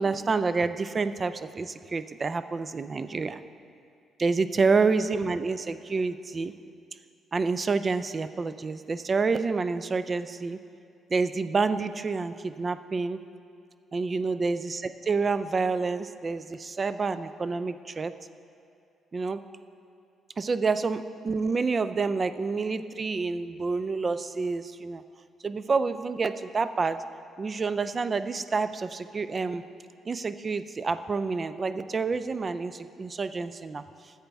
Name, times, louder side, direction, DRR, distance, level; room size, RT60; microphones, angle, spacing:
voice 1, 0.0-3.4 4.2-6.5 7.3-10.6 11.1-13.2 13.9-18.1 19.1-19.4 20.4-25.0 25.4-27.0 27.4-29.6 30.1-33.8, right 4 dB, 35° right, 12 dB, 0.4 m, -28 dB
14.5 x 8.0 x 3.5 m, 2.4 s
cardioid pair, 90°, 0 cm